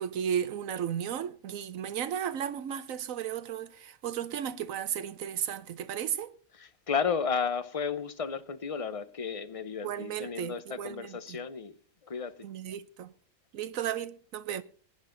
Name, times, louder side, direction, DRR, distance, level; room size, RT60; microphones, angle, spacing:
voice 1, 0.0-6.3 9.8-11.4 12.4-13.1 13.5-14.6, right 9 dB, 90° right, 1.2 m, -34 dB
voice 2, 6.5-11.8 12.1-12.3, left 6 dB, 30° left, 0.7 m, -33 dB
17.5 x 9.9 x 3.9 m
omnidirectional pair, 1.4 m